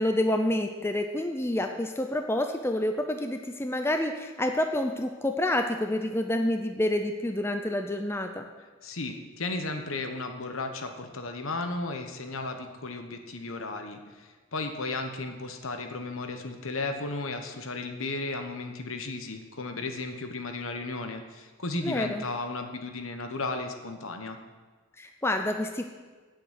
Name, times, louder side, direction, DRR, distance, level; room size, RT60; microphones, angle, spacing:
voice 1, 0.0-8.4 21.8-22.3 25.0-25.9, left 1 dB, 10° left, 5 dB, 0.5 m, -28 dB
voice 2, 8.8-24.4, left 3 dB, 65° left, 6 dB, 1.1 m, -34 dB
9.1 x 7.8 x 8.1 m, 1.4 s
head